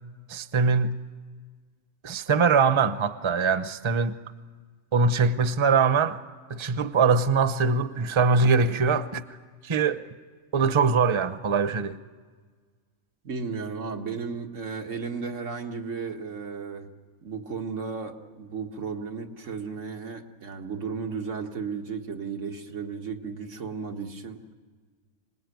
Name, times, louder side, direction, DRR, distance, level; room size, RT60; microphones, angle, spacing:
voice 1, 0.3-1.0 2.0-4.1 4.9-6.2 6.5-9.2 9.6-10.0 10.5-12.0, right 5 dB, 30° right, 0.7 m, -22 dB
voice 2, 13.2-16.9 17.2-24.4, right 5 dB, 90° right, 2.0 m, -34 dB
26.0 x 20.0 x 9.3 m
omnidirectional pair, 1.3 m